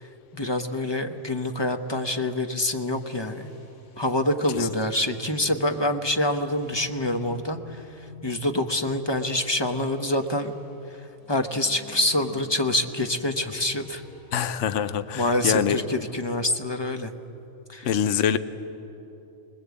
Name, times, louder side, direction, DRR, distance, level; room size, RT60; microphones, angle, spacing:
voice 1, 0.3-3.5 4.0-7.8 8.2-10.5 11.3-14.0 15.1-17.1 17.7-17.9, left 1 dB, 20° left, 6 dB, 1.0 m, -26 dB
sound 1, 2.5-16.2, left 1 dB, 85° left, 4.6 m, -50 dB
voice 2, 14.3-15.8 17.8-18.4, left 8 dB, 65° left, 13 dB, 1.1 m, -24 dB
24.5 x 21.0 x 8.4 m, 3.0 s
omnidirectional pair, 1.4 m